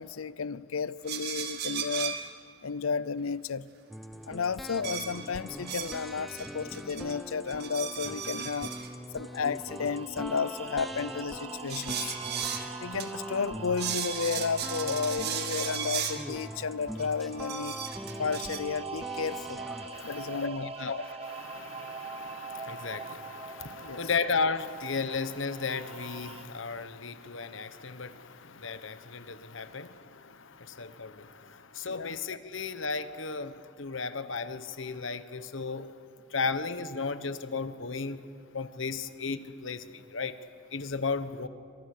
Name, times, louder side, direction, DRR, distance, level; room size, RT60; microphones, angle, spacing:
voice 1, 0.0-2.2 2.6-3.7 4.3-8.7 9.1-12.2 12.8-17.8 18.2-19.6 20.0-20.9 23.8-24.1 31.9-32.2, left 5 dB, 90° left, 0.6 m, -33 dB
sound 1, 1.1-2.3 4.8-6.0 6.4-7.2 7.5-8.9 11.7-12.7 13.0-13.1 13.4-13.5 13.8-16.2 17.0-18.6, right 8 dB, 50° right, 2.1 m, -36 dB
sound 2, 3.9-20.0, equal, ahead, 0.8 m, -42 dB
sound 3, 9.1-26.4, right 5 dB, 30° right, 1.1 m, -43 dB
voice 2, 19.8-35.9 36.3-38.2 38.5-40.3 40.7-41.5, left 4 dB, 65° left, 1.2 m, -35 dB
28.0 x 26.0 x 6.7 m
head